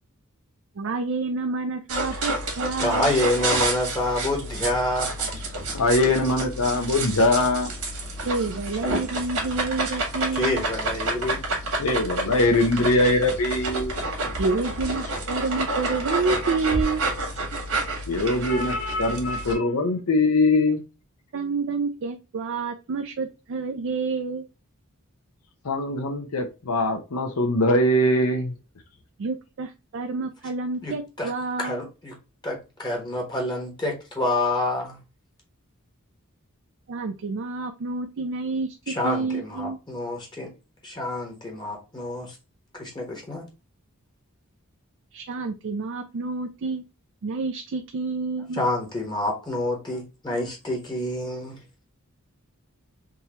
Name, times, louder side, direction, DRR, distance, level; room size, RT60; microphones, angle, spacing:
voice 1, 0.8-3.2 8.2-10.6 14.4-17.0 21.3-24.4 29.2-31.9 36.9-39.8 45.1-46.8 47.2-48.6, right 4 dB, 55° right, 0.4 m, -29 dB
sound 1, 1.9-19.5, right 2 dB, 75° right, 1.6 m, -29 dB
voice 2, 2.8-5.1 10.3-11.4 30.8-31.3 31.6-32.1 32.4-35.0 38.9-40.5 40.8-42.3 42.8-43.4 48.6-51.6, left 1 dB, 20° left, 1.1 m, -27 dB
voice 3, 5.7-7.7 11.8-13.9 18.1-20.8 25.6-28.5, left 2 dB, 75° left, 0.7 m, -22 dB
3.7 x 2.8 x 2.8 m
head